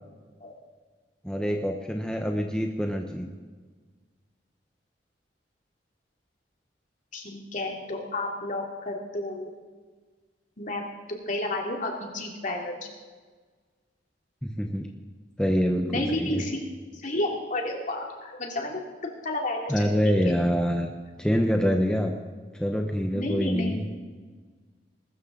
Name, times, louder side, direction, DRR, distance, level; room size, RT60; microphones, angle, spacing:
voice 1, 1.2-3.3 14.4-14.9 15.4-16.4 19.7-20.9 21.2-22.1 22.6-23.8, equal, 5° left, 2 dB, 0.9 m, -25 dB
voice 2, 7.1-9.5 10.6-10.8 11.3-12.7 15.9-16.6 16.9-18.8 19.2-19.9 20.2-20.3 23.1-23.8, left 2 dB, 45° left, 1 dB, 2.6 m, -31 dB
20.5 x 13.0 x 3.9 m, 1.4 s
head